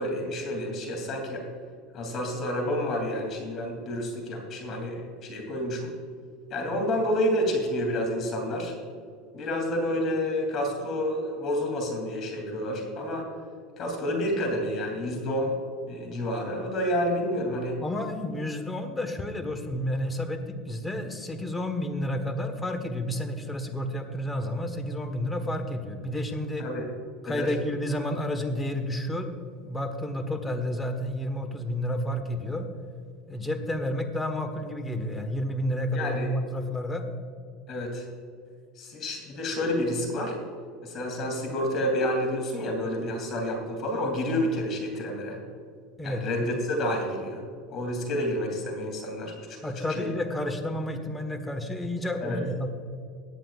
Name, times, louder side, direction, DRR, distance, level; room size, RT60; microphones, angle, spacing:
voice 1, 0.0-1.5 1.9-5.9 6.5-8.7 9.3-13.3 13.8-15.6 15.9-17.8 26.6-26.8 27.2-27.5 35.9-36.3 37.7-38.0 38.8-40.4 40.8-45.4 46.0-47.4 47.7-49.5 49.8-50.1 52.2-52.4, left 1 dB, 45° left, 2 dB, 2.9 m, -29 dB
voice 2, 17.8-26.7 27.2-29.3 29.6-32.7 33.3-37.1 46.0-46.2 49.6-52.7, left 1 dB, 10° left, 7 dB, 1.4 m, -30 dB
17.5 x 9.9 x 2.5 m, 2.2 s
supercardioid pair, 115°, 0 cm